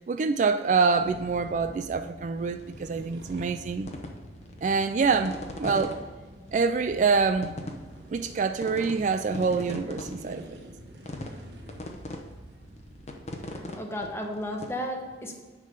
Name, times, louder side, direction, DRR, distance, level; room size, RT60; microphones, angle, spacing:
voice 1, 0.0-3.9 4.6-6.0 6.5-7.6 8.1-10.4, right 5 dB, 45° right, 9 dB, 0.3 m, -26 dB
sound 1, 0.9-13.7, equal, 70° right, 1.3 m, -47 dB
sound 2, 2.5-3.0 3.4-6.0 6.5-6.6 7.0-7.2 7.4-8.4 8.6-9.0 9.2-10.5 11.1-11.4 11.7-12.2 12.6-14.7, left 1 dB, 40° left, 0.8 m, -38 dB
voice 2, 13.5-15.4, left 1 dB, 15° left, 2 dB, 1.0 m, -34 dB
9.9 x 3.7 x 6.4 m, 1.3 s
head